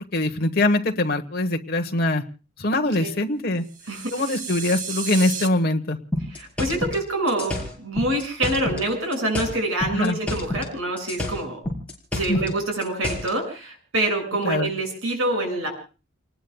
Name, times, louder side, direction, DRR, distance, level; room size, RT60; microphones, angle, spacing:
voice 1, 0.0-2.2 2.6-3.6 4.1-6.0 9.9-10.2 12.3-12.4 14.4-14.7, left 2 dB, 50° left, 4 dB, 1.3 m, -23 dB
sound 1, 3.7-5.5, right 6 dB, 40° right, 1.2 m, -33 dB
sound 2, 6.1-8.9 9.1-10.7 11.0-13.3, left 1 dB, 5° left, 4.5 m, -29 dB
voice 2, 6.3-11.6 12.1-15.7, right 1 dB, 85° right, 2 dB, 6.5 m, -26 dB
30.0 x 19.5 x 2.3 m, 0.34 s
head